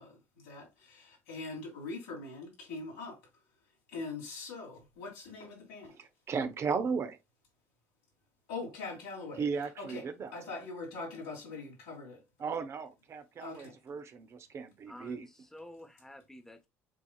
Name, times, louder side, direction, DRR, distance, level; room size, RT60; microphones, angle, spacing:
voice 1, 0.0-3.2 3.9-6.0 8.5-9.4 9.8-10.1 10.3-12.2 13.4-13.7, left 3 dB, 80° left, 3.1 m, -42 dB
voice 2, 6.0-7.2 9.4-10.3 12.4-15.3, right 5 dB, 45° right, 0.9 m, -36 dB
voice 3, 14.9-16.7, left 1 dB, 5° left, 1.2 m, -50 dB
7.5 x 2.8 x 2.4 m
hypercardioid pair, 70°, 6 cm